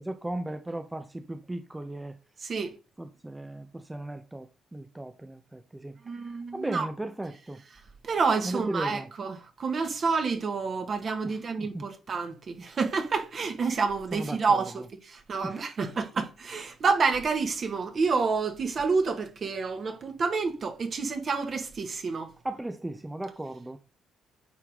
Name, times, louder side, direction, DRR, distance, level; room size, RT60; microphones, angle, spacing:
voice 1, 0.0-2.2 3.0-6.0 6.5-7.6 8.4-9.1 11.2-11.8 14.1-14.6 15.4-16.1 22.4-23.8, right 1 dB, 15° right, 0.8 m, -36 dB
voice 2, 2.4-2.8 6.0-6.9 8.0-22.3, right 4 dB, 50° right, 1.9 m, -29 dB
9.4 x 4.6 x 3.7 m
supercardioid pair, 60°, 0 cm